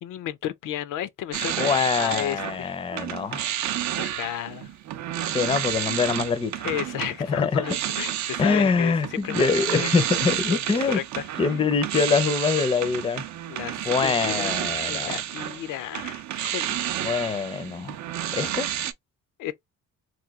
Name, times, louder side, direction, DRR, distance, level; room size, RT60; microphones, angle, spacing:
voice 1, 0.0-2.8 4.0-4.7 6.6-8.9 9.2-9.9 10.5-11.3 13.5-16.8 19.4-19.5, left 12 dB, 75° left, 0.5 m, -33 dB
sound 1, 1.3-2.6 2.9-18.9, right 11 dB, 60° right, 0.5 m, -30 dB
voice 2, 1.6-3.5 5.3-6.7 7.3-7.7 8.4-11.0 11.4-13.2 13.9-15.2 17.0-18.0 18.3-18.7, left 5 dB, 15° left, 0.4 m, -24 dB
3.1 x 2.2 x 3.4 m
cardioid pair, 125°, 32 cm